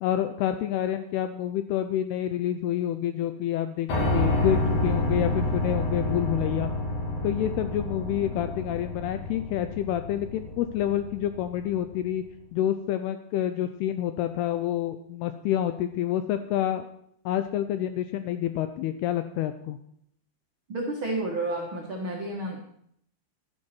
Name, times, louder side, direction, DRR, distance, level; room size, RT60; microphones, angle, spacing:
voice 1, 0.0-6.7 7.2-12.2 12.5-16.9 17.3-19.8, left 11 dB, 85° left, 9 dB, 2.3 m, -28 dB
Piano, 3.9-11.9, left 1 dB, 50° left, 3.3 m, -29 dB
voice 2, 20.7-22.6, right 2 dB, 90° right, -1 dB, 1.1 m, -30 dB
12.0 x 11.0 x 4.4 m, 0.67 s
omnidirectional pair, 5.1 m